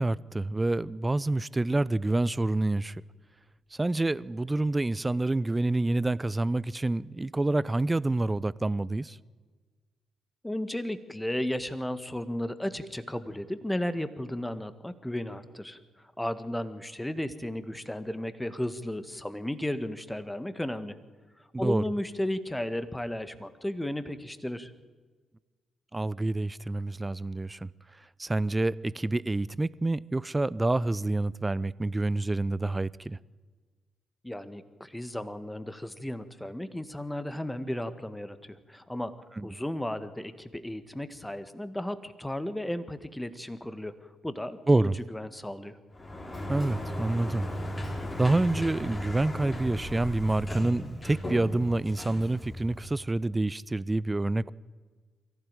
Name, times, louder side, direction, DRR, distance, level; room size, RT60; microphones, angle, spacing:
voice 1, 0.0-3.0 3.8-9.2 21.5-21.8 25.9-27.7 28.2-33.2 39.4-39.5 44.7-45.0 46.5-47.5 48.2-54.5, right 2 dB, 20° right, 0.6 m, -27 dB
voice 2, 10.4-21.0 21.6-24.7 34.2-45.8, left 1 dB, 10° left, 1.7 m, -34 dB
Sliding door, 45.9-53.1, left 1 dB, 30° left, 4.8 m, -36 dB
23.0 x 15.5 x 9.0 m
figure-of-eight pair, 40°, 0 cm